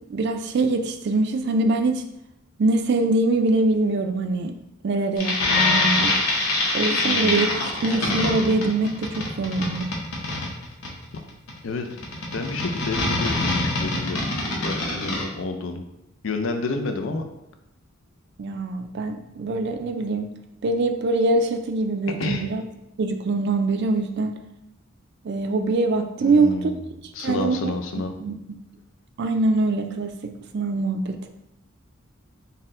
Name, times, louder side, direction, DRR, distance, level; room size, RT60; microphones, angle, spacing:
voice 1, 0.1-2.0 2.6-4.5 4.8-6.2 6.7-7.5 7.8-9.9 18.4-20.3 20.6-22.6 23.0-24.3 25.2-26.7 27.2-27.7 28.2-28.6 29.2-31.3, right 2 dB, 50° right, 7 dB, 0.3 m, -23 dB
sound 1, 5.2-15.2, left 2 dB, 85° left, 0.9 m, -24 dB
voice 2, 7.0-7.5 11.6-11.9 12.3-14.2 14.6-15.8 16.2-17.2 22.2-22.5 26.2-26.8 27.1-28.1, left 3 dB, 65° left, 5 dB, 0.5 m, -29 dB
4.1 x 2.1 x 3.7 m, 0.87 s
head